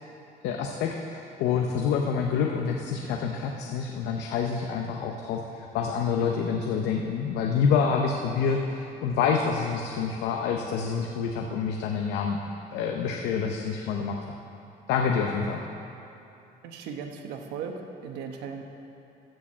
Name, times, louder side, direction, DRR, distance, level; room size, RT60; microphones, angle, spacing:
voice 1, 0.4-12.4 12.7-14.2 14.9-15.6, left 6 dB, 85° left, 2 dB, 0.7 m, -27 dB
voice 2, 16.6-18.6, right 6 dB, 90° right, 4 dB, 1.0 m, -37 dB
14.0 x 4.8 x 7.3 m, 2.8 s
cardioid pair, 110°, 17 cm